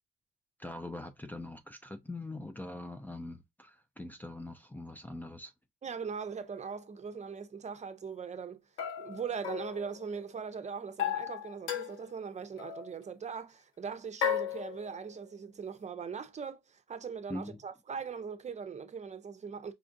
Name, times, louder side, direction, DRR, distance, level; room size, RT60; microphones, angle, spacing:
voice 1, 0.6-5.5 17.3-17.6, left 2 dB, 10° left, 0.4 m, -42 dB
voice 2, 5.8-8.6 9.0-19.7, right 6 dB, 35° right, 0.7 m, -40 dB
sound 1, 6.4-6.5 8.8-10.4 11.0-12.2 12.6-12.9 14.2-15.2, left 9 dB, 90° left, 1.1 m, -36 dB
5.5 x 2.4 x 2.5 m
cardioid pair, 90°, 20 cm